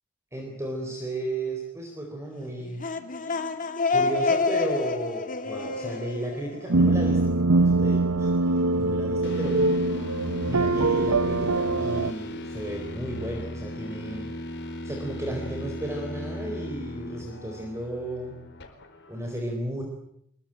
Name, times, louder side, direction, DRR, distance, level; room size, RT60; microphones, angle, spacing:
voice 1, 0.3-2.8 3.9-9.6 10.5-14.3 14.8-18.4 19.1-19.8, right 1 dB, 15° right, 2 dB, 4.2 m, -34 dB
sound 1, 2.6-7.3, left 4 dB, 40° left, 2.1 m, -28 dB
sound 2, 6.7-12.1, right 2 dB, 90° right, 1.0 m, -23 dB
sound 3, 9.2-19.2, left 1 dB, 55° left, 4.7 m, -37 dB
26.0 x 23.0 x 9.1 m, 0.74 s
head